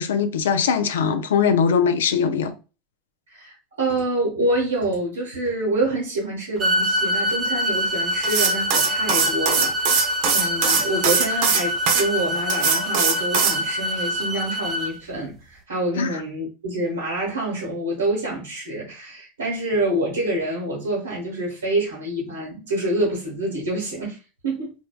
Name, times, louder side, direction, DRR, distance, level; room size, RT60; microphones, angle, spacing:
voice 1, 0.0-2.5 16.0-16.2, left 6 dB, 75° left, 0.3 m, -21 dB
voice 2, 3.3-24.2 24.4-24.7, right 1 dB, 85° right, 0.8 m, -26 dB
sound 1, 6.6-14.9, left 1 dB, 20° right, 0.9 m, -25 dB
sound 2, 8.2-12.0 12.5-13.6, right 6 dB, 60° right, 0.6 m, -21 dB
2.6 x 2.1 x 2.2 m
hypercardioid pair, 85°, 0 cm